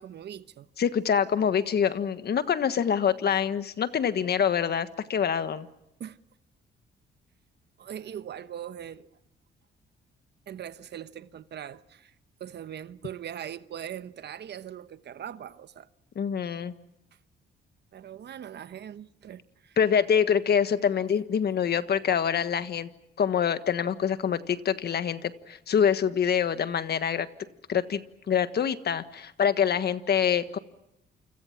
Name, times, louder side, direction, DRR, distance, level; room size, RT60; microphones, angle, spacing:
voice 1, 0.0-0.7 6.0-6.2 7.8-9.1 10.5-12.1 12.4-15.9 17.9-19.8, right 9 dB, 60° right, 1.1 m, -41 dB
voice 2, 0.8-5.7 16.1-16.7 19.8-22.9 23.2-27.3 27.7-30.6, left 8 dB, 55° left, 1.5 m, -25 dB
29.0 x 26.5 x 5.9 m
cardioid pair, 90°, 20 cm